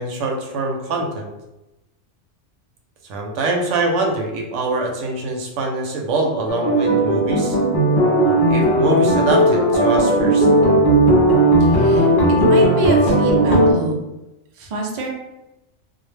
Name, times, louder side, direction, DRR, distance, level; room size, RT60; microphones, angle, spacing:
voice 1, 0.0-1.3 3.1-7.6 8.2-10.5, right 2 dB, 80° right, 1 dB, 0.9 m, -24 dB
sound 1, 6.5-13.7, right 1 dB, 55° left, 0.6 m, -16 dB
voice 2, 11.6-12.1 12.4-14.0 14.5-15.1, right 2 dB, 55° right, 0 dB, 0.5 m, -26 dB
2.3 x 2.0 x 3.1 m, 0.95 s
omnidirectional pair, 1.2 m